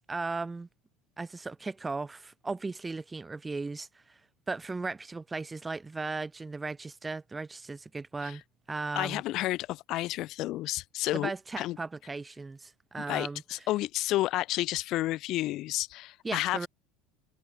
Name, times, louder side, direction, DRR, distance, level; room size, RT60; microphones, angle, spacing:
voice 1, 0.1-0.7 1.2-4.2 4.5-8.4 8.7-9.2 11.1-13.4 16.2-16.7, right 3 dB, 15° right, 3.5 m, -36 dB
voice 2, 8.9-11.3 11.6-11.8 13.1-16.7, left 16 dB, 55° left, 4.0 m, -31 dB
hypercardioid pair, 90°, 0 cm